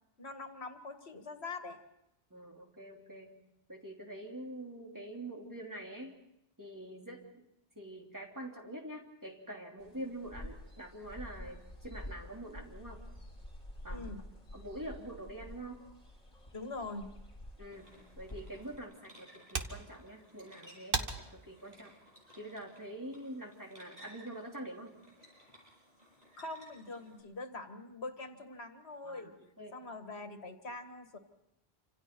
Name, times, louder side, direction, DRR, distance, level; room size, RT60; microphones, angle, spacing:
voice 1, 0.2-1.8 13.9-14.2 16.5-17.1 26.4-29.3 29.7-31.2, left 3 dB, 80° left, 7 dB, 2.0 m, -43 dB
voice 2, 2.3-3.4 3.7-6.2 6.6-7.4 7.7-13.0 13.8-14.1 14.5-15.8 17.6-21.9 22.4-25.0 29.0-29.8, right 1 dB, 15° right, -1 dB, 3.0 m, -45 dB
sound 1, 9.8-18.8, left 1 dB, 35° left, 4.2 m, -49 dB
sound 2, 17.7-27.2, equal, 40° right, 8.1 m, -59 dB
sound 3, 18.5-23.5, right 4 dB, 55° right, 1.6 m, -42 dB
28.0 x 26.0 x 4.5 m, 0.83 s
omnidirectional pair, 1.1 m